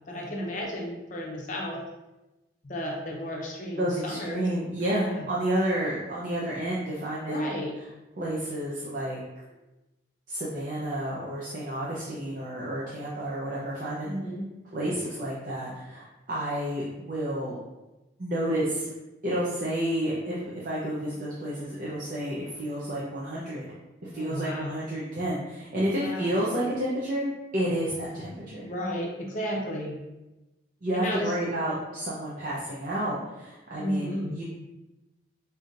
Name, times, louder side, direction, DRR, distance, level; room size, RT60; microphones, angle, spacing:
voice 1, 0.1-1.8 2.6-4.5 4.8-5.2 7.3-7.7 14.0-14.4 24.1-24.8 26.0-26.3 28.6-30.0 30.9-31.3 33.8-34.4, equal, 45° left, -1 dB, 0.6 m, -33 dB
voice 2, 3.8-7.5 8.2-9.2 10.3-14.1 14.7-17.6 18.2-18.9 19.2-23.7 24.0-27.3 27.5-28.7 30.8-34.4, right 1 dB, 45° right, -7 dB, 0.7 m, -30 dB
5.4 x 2.8 x 2.5 m, 1.0 s
head